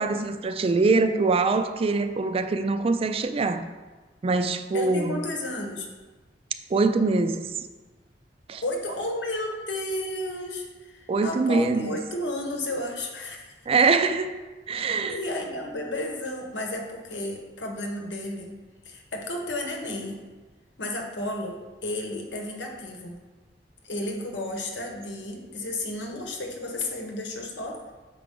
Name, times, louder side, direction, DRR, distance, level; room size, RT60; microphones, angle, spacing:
voice 1, 0.0-3.6 4.2-5.2 6.7-7.5 8.5-8.6 11.1-11.9 13.7-14.4 14.7-15.2, right 3 dB, 35° right, 0.3 m, -23 dB
voice 2, 4.7-5.9 8.6-13.5 15.1-18.6 18.8-20.2 20.8-23.2 23.8-27.8, left 1 dB, 90° left, 1.1 m, -32 dB
6.7 x 4.9 x 3.7 m
head